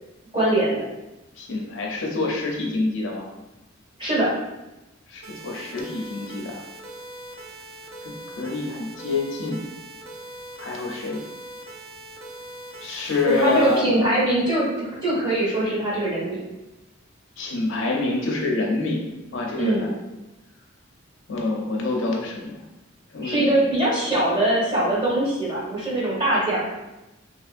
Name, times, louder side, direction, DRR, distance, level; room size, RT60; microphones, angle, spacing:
voice 1, 0.3-0.8 4.0-4.3 13.3-14.7 15.0-16.4 19.6-19.9 23.2-26.7, right 1 dB, 25° right, -8 dB, 1.4 m, -22 dB
voice 2, 1.4-3.3 5.1-6.6 8.0-9.6 10.6-11.2 12.8-14.0 17.4-20.0 21.3-22.6 23.1-23.5, left 3 dB, 65° left, -1 dB, 0.6 m, -27 dB
sound 1, 5.2-13.8, right 2 dB, 85° right, 0.6 m, -41 dB
3.4 x 2.9 x 2.5 m, 0.99 s
head